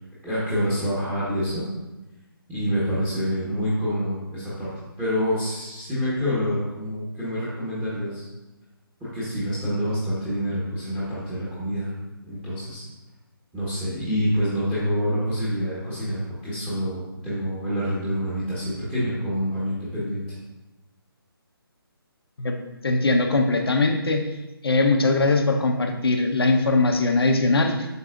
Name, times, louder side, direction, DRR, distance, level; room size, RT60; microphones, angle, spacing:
voice 1, 0.2-1.6 2.5-4.7 5.0-8.2 9.0-11.9 12.3-12.8 13.5-20.2, equal, 5° right, -10 dB, 1.3 m, -27 dB
voice 2, 22.8-24.3 24.6-27.9, left 3 dB, 75° left, 4 dB, 1.0 m, -21 dB
8.1 x 5.9 x 2.5 m, 1.1 s
figure-of-eight pair, 155°, 13 cm